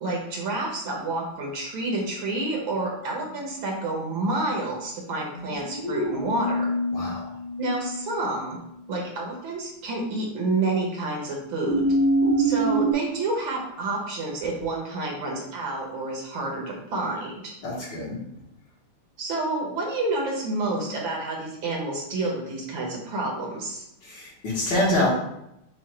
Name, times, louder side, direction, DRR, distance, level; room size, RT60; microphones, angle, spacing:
voice 1, 0.0-6.7 7.6-8.6 8.9-12.0 12.4-17.5 19.2-23.9, right 2 dB, 65° right, -2 dB, 1.7 m, -29 dB
sound 1, 5.3-7.9 11.6-12.9, right 1 dB, 25° left, 0.9 m, -24 dB
voice 2, 6.9-7.3 17.6-18.2 24.0-25.1, left 1 dB, 60° left, -5 dB, 2.0 m, -26 dB
5.0 x 2.5 x 4.3 m, 0.80 s
omnidirectional pair, 2.4 m